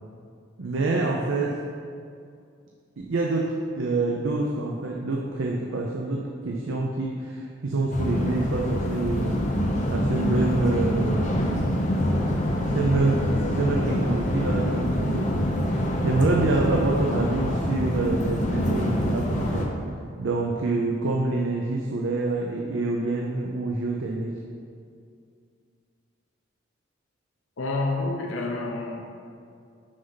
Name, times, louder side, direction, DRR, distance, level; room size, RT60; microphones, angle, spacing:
voice 1, 0.6-1.6 3.0-9.6 9.9-11.4 12.5-15.3 16.0-19.7 20.2-24.3, right 2 dB, 75° right, -1 dB, 0.6 m, -26 dB
sound 1, 7.9-19.7, equal, 40° left, 0.7 m, -25 dB
voice 2, 27.6-29.0, left 2 dB, 80° left, 1 dB, 0.6 m, -28 dB
6.3 x 5.6 x 4.0 m, 2.3 s
head